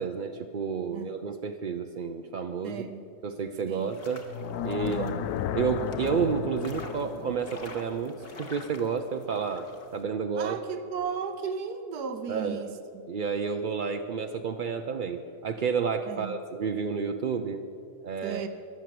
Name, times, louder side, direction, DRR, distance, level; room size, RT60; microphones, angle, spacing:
voice 1, 0.0-2.8 3.2-4.3 4.6-5.0 5.5-10.6 12.3-12.6 13.1-17.6 18.0-18.5, right 6 dB, 60° right, 6 dB, 0.5 m, -30 dB
voice 2, 2.6-3.1 3.7-3.9 4.7-5.2 10.3-13.0 16.1-16.3 18.2-18.5, right 6 dB, 85° right, 8 dB, 1.5 m, -35 dB
sound 1, 3.7-10.0, left 3 dB, 40° left, 1.5 m, -48 dB
sound 2, 4.2-9.4, left 9 dB, 80° left, 1.1 m, -35 dB
22.0 x 8.1 x 7.7 m, 2.5 s
omnidirectional pair, 1.6 m